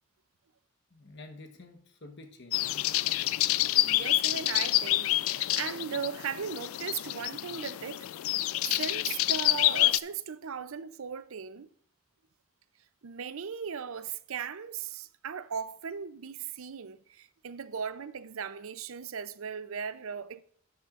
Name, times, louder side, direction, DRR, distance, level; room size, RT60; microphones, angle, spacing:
voice 1, 0.9-2.9, left 2 dB, 60° left, 1.1 m, -49 dB
sound 1, 2.5-10.0, left 16 dB, 80° left, 0.4 m, -28 dB
voice 2, 3.8-8.1 8.8-11.7 13.0-20.4, right 7 dB, 75° right, 0.6 m, -38 dB
12.0 x 8.8 x 2.5 m
head